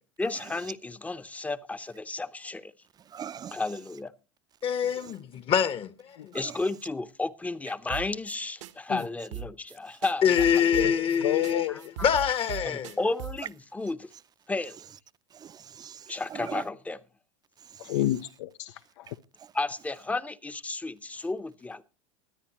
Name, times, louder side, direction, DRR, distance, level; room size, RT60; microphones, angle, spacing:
voice 1, 0.2-2.7 3.5-4.1 6.3-10.4 11.7-12.1 12.6-14.1 14.5-14.8 16.1-17.0 19.5-21.8, left 3 dB, 10° left, 0.8 m, -33 dB
voice 2, 3.1-3.6 4.8-5.1 6.3-6.5 15.3-16.6 17.9-18.0, right 8 dB, 25° right, 0.6 m, -41 dB
voice 3, 4.6-5.9 6.2-6.3 8.9-9.0 10.2-11.7 12.0-12.9, left 8 dB, 35° left, 1.0 m, -25 dB
sound 1, 7.9-8.4 8.6-8.7 9.0-9.1 9.3-9.8 10.0-11.2 11.4-11.5 11.8-13.5, right 10 dB, 75° right, 1.2 m, -38 dB
voice 4, 11.2-11.7 17.8-19.1, left 15 dB, 70° left, 0.6 m, -29 dB
23.5 x 9.7 x 3.0 m
hypercardioid pair, 105°, 16 cm